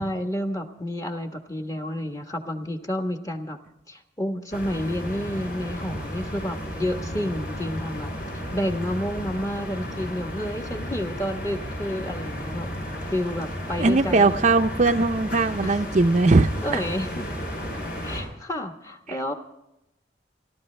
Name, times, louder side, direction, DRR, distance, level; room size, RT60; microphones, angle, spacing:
voice 1, 0.0-3.6 3.9-12.7 13.1-14.4 15.6-15.8 16.6-17.3 18.0-19.3, left 1 dB, 20° left, 4 dB, 1.3 m, -30 dB
sound 1, 4.5-18.2, equal, 55° left, 5.7 m, -33 dB
voice 2, 13.8-16.8, right 3 dB, 40° right, 7 dB, 0.5 m, -20 dB
29.5 x 13.0 x 3.3 m, 0.86 s
head